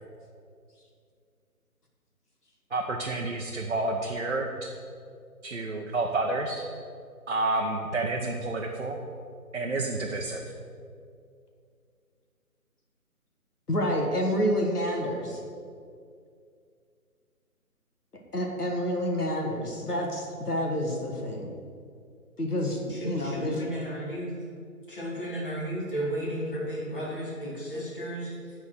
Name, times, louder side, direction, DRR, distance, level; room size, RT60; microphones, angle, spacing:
voice 1, 2.7-4.7 5.4-6.6 7.3-9.0 9.5-10.4, right 2 dB, 50° right, 1 dB, 0.7 m, -29 dB
voice 2, 13.7-15.4 18.3-21.5 22.4-23.6, equal, 85° left, 0 dB, 1.7 m, -28 dB
voice 3, 22.9-24.3 24.9-28.5, right 1 dB, 35° left, -6 dB, 2.2 m, -34 dB
8.5 x 4.2 x 6.4 m, 2.3 s
figure-of-eight pair, 150°, 45 cm